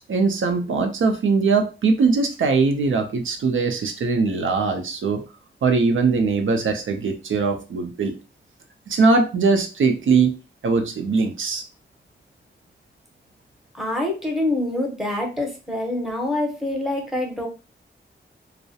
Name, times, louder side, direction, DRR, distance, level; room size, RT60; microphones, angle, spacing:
voice 1, 0.1-5.2 5.6-8.1 8.9-10.3 10.6-11.6, right 4 dB, 85° right, 5 dB, 0.4 m, -21 dB
voice 2, 13.7-17.5, left 1 dB, ahead, 1 dB, 0.6 m, -25 dB
2.3 x 2.0 x 2.6 m, 0.31 s
wide cardioid pair, 115°, 20 cm